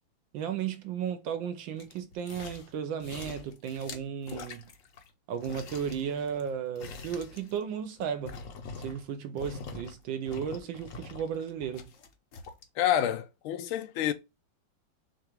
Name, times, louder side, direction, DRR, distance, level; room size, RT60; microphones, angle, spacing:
voice 1, 0.3-4.7 5.3-8.4 8.8-11.9, right 8 dB, 75° right, 1.3 m, -34 dB
sound 1, 1.8-2.7 3.0-5.1 5.4-9.1 9.4-9.9 10.3-12.6 13.1-13.2, left 4 dB, 60° left, 0.9 m, -44 dB
voice 2, 12.8-14.1, left 11 dB, 85° left, 1.5 m, -28 dB
6.7 x 2.4 x 2.9 m
omnidirectional pair, 2.2 m